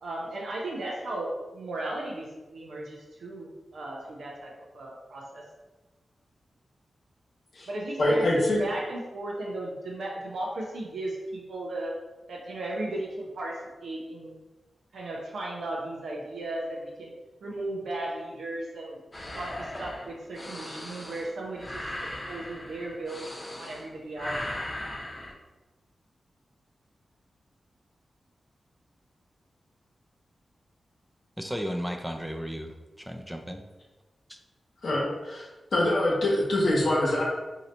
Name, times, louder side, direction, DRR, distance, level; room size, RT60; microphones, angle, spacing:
voice 1, 0.0-5.4 7.7-11.9 12.3-14.3 14.9-17.1 17.4-19.0 19.3-23.2 23.6-24.4, right 1 dB, 85° right, -2 dB, 0.5 m, -35 dB
voice 2, 8.0-8.6 34.8-35.5 35.7-37.2, left 1 dB, 75° left, -5 dB, 0.9 m, -24 dB
sound 1, 19.1-23.9 24.1-25.3, left 1 dB, 20° left, 0.8 m, -38 dB
voice 3, 31.4-32.7 33.0-33.6 34.3-34.4, equal, 5° right, 4 dB, 0.4 m, -34 dB
2.8 x 2.6 x 4.2 m, 1.1 s
cardioid pair, 55°, 0 cm